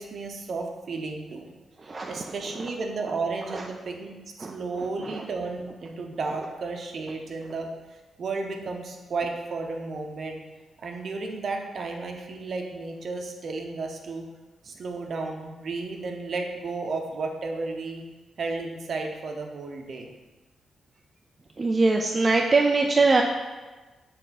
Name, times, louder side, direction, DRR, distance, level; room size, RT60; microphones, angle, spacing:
voice 1, 0.0-1.5 2.1-10.4 10.8-14.3 14.6-18.0 18.4-20.1, right 3 dB, 50° right, 3 dB, 0.7 m, -33 dB
voice 2, 21.6-23.2, right 3 dB, 25° right, 1 dB, 0.3 m, -21 dB
6.8 x 3.5 x 4.1 m, 1.2 s
wide cardioid pair, 155°, 0 cm